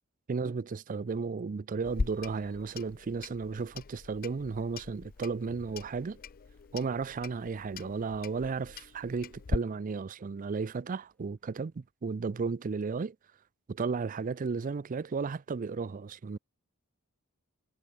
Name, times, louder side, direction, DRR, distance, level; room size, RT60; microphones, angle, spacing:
voice 1, 0.3-6.2 6.7-13.2 13.7-16.4, right 4 dB, 40° right, 0.4 m, -34 dB
Clock, 1.8-9.6, left 4 dB, 40° left, 0.5 m, -40 dB
sound 1, 2.1-11.9, left 1 dB, 5° left, 6.4 m, -73 dB
head